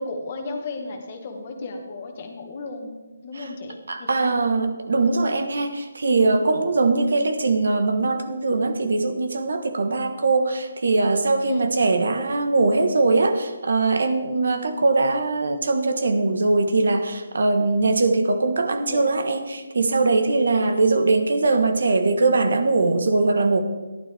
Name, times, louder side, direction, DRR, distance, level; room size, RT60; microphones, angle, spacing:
voice 1, 0.0-4.4 11.4-11.7 18.9-19.2 20.5-20.8, left 2 dB, 30° left, 3 dB, 1.4 m, -34 dB
voice 2, 3.9-23.6, right 3 dB, 65° right, 7 dB, 1.2 m, -21 dB
13.0 x 11.5 x 3.5 m, 1.2 s
hypercardioid pair, 175°, 0 cm